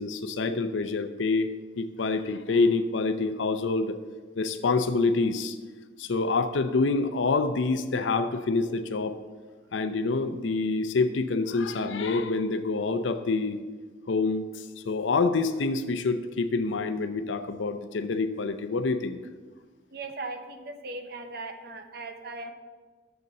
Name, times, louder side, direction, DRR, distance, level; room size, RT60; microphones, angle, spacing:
voice 1, 0.0-1.5 1.8-4.0 4.4-5.6 6.0-9.2 9.7-13.6 14.1-19.2, left 3 dB, 85° left, 10 dB, 0.6 m, -27 dB
voice 2, 19.9-22.5, right 3 dB, 55° right, 7 dB, 0.7 m, -38 dB
6.8 x 6.7 x 7.5 m, 1.4 s
head